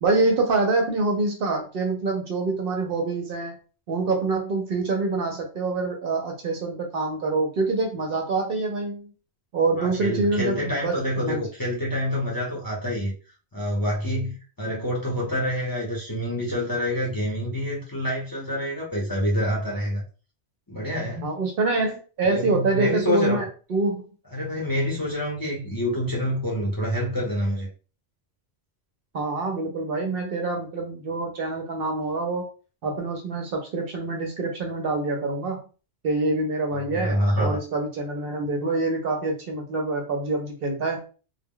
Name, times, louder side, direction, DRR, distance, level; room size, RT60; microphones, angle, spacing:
voice 1, 0.0-3.5 3.9-9.1 9.5-11.4 21.2-24.0 29.1-32.5 32.8-35.6 36.0-41.0, right 3 dB, 60° right, 0.7 m, -26 dB
voice 2, 9.8-13.1 13.5-20.0 20.7-21.3 22.2-23.4 24.3-27.7 36.7-37.6, equal, 20° left, 0.6 m, -27 dB
2.1 x 2.0 x 3.6 m
omnidirectional pair, 1.2 m